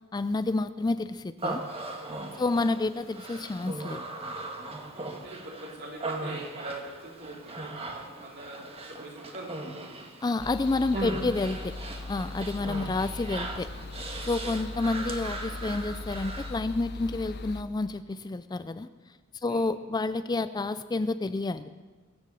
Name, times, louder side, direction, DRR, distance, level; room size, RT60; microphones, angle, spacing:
voice 1, 0.1-1.6 2.4-4.0 10.2-11.7 12.1-13.7 14.2-18.9 19.4-21.7, left 3 dB, 20° left, 13 dB, 0.4 m, -29 dB
Human voice, 1.4-16.6, right 2 dB, 30° right, 1.6 m, -38 dB
voice 2, 1.9-2.5 4.7-10.0 12.5-12.7 14.4-14.5 19.4-19.7, right 1 dB, 55° right, -1 dB, 3.6 m, -44 dB
sound 1, 10.4-17.6, left 3 dB, 55° left, 0.8 m, -40 dB
22.5 x 7.9 x 6.9 m, 1.3 s
head